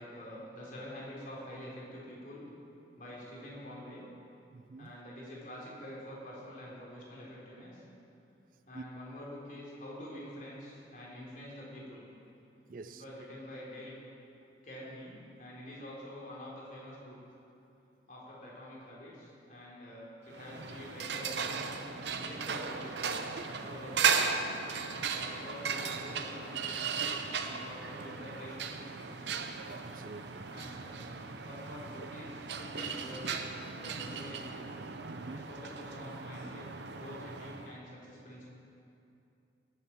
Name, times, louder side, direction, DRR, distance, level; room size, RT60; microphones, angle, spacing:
voice 1, 0.0-2.5 3.0-4.1 4.8-7.8 8.7-12.0 12.8-14.0 14.6-17.2 18.1-21.8 22.2-23.1 23.6-24.2 25.1-29.3 30.5-31.0 31.4-34.7 35.2-36.7 36.9-38.5, left 1 dB, 45° left, -5 dB, 3.6 m, -47 dB
voice 2, 4.5-4.9 8.7-8.8 12.7-13.0 23.2-23.5 24.6-24.7 29.8-30.5 35.1-35.4, right 3 dB, 50° right, 12 dB, 0.4 m, -47 dB
sound 1, 20.3-37.8, right 5 dB, 75° right, 0.8 m, -36 dB
18.0 x 10.5 x 4.6 m, 2.7 s
head